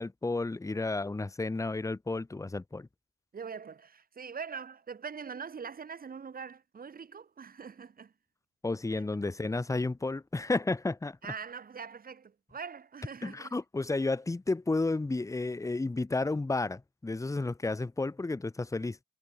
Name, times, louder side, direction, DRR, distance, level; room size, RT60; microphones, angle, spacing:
voice 1, 0.0-2.9 8.6-11.3 13.2-19.0, left 3 dB, 10° left, 0.7 m, -32 dB
voice 2, 3.3-8.1 11.2-13.5, right 6 dB, 30° right, 0.8 m, -43 dB
cardioid pair, 90°, 30 cm